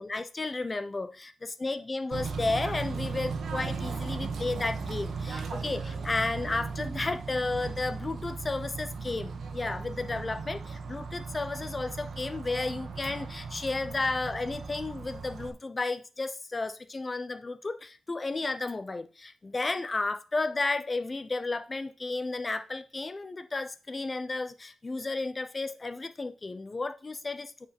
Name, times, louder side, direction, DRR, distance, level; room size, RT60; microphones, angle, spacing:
voice 1, 0.0-27.7, left 3 dB, 25° left, 11 dB, 0.8 m, -33 dB
Bird / Train, 2.1-15.5, right 4 dB, 55° right, 1.5 m, -37 dB
8.5 x 4.9 x 6.1 m, 0.35 s
cardioid pair, 110°, 0 cm